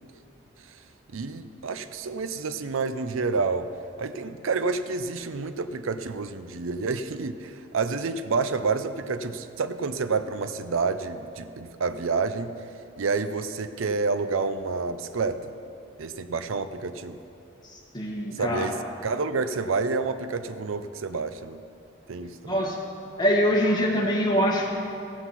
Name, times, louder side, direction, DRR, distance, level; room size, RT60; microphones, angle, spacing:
voice 1, 1.1-3.7 4.0-12.5 13.0-15.5 16.0-17.2 18.3-18.8 19.0-21.6 22.1-22.6, right 4 dB, 85° right, 11 dB, 0.5 m, -29 dB
voice 2, 17.7-18.7 22.4-22.8 23.2-24.7, equal, 20° left, -1 dB, 1.4 m, -24 dB
15.0 x 8.1 x 5.7 m, 2.6 s
head